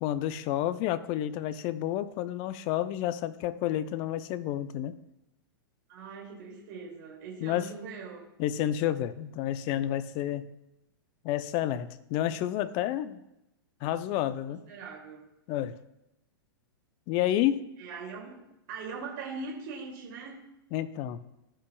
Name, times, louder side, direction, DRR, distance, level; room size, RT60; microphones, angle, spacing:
voice 1, 0.0-5.0 7.4-7.7 8.4-10.5 11.2-13.2 13.8-14.6 15.5-15.8 17.1-17.6 20.7-21.2, left 12 dB, 40° left, 14 dB, 0.6 m, -30 dB
voice 2, 5.9-8.2 14.5-15.2 17.8-18.4 18.7-20.4, right 4 dB, 55° right, -2 dB, 2.4 m, -41 dB
16.0 x 5.6 x 2.3 m, 0.89 s
hypercardioid pair, 105°, 12 cm